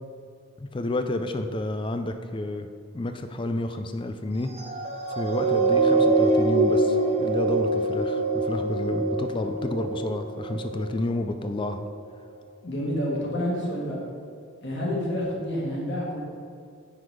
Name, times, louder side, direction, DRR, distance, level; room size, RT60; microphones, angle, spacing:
voice 1, 0.6-2.7 2.9-4.5 5.2-11.9, left 1 dB, 20° left, 8 dB, 0.3 m, -30 dB
sound 1, 4.5-11.1 11.8-11.9, right 2 dB, 30° right, 0.8 m, -24 dB
voice 2, 12.6-14.0 14.6-16.2, equal, 55° left, -3 dB, 1.7 m, -28 dB
9.7 x 4.0 x 4.7 m, 2.3 s
head